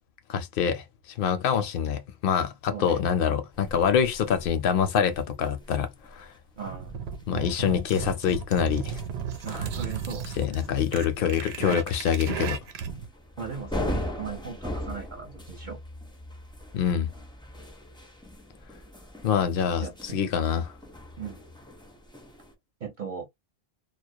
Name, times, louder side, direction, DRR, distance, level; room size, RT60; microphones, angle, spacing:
voice 1, 0.3-0.8 1.2-6.3 7.3-9.0 10.4-12.6 16.7-17.1 19.2-19.9 20.1-20.7, left 8 dB, 65° left, 0.7 m, -25 dB
voice 2, 2.7-3.0 6.6-7.0 9.4-10.2 13.4-15.8 19.8-20.4 21.2-21.4 22.8-23.3, right 6 dB, 55° right, 0.8 m, -38 dB
sound 1, 3.5-22.5, left 1 dB, 10° left, 0.3 m, -41 dB
sound 2, 6.6-13.1, right 7 dB, 90° right, 0.8 m, -35 dB
2.3 x 2.0 x 2.6 m
omnidirectional pair, 1.0 m